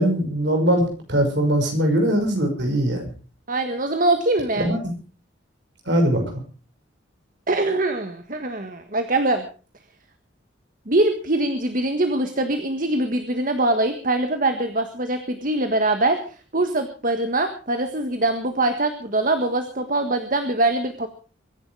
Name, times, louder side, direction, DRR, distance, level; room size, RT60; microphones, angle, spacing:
voice 1, 0.0-3.0 4.6-4.8 5.9-6.2, right 1 dB, 60° right, 4 dB, 5.9 m, -21 dB
voice 2, 3.5-4.7 7.5-9.4 10.9-21.1, right 2 dB, 45° right, 7 dB, 1.5 m, -23 dB
23.5 x 11.0 x 4.8 m, 0.38 s
head